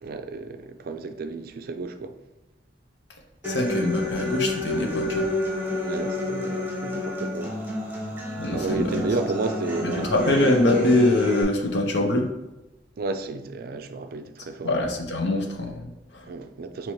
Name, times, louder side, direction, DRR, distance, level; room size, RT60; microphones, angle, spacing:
voice 1, 0.0-2.2 5.7-7.5 8.5-10.5 13.0-14.8 16.3-16.9, right 3 dB, 55° right, 0.4 m, -32 dB
voice 2, 3.4-5.3 8.3-9.0 9.8-12.3 14.6-16.3, left 1 dB, 70° left, 0.8 m, -24 dB
Human voice / Acoustic guitar, 3.4-11.4, left 2 dB, 10° right, 1.1 m, -29 dB
5.6 x 2.9 x 3.1 m
head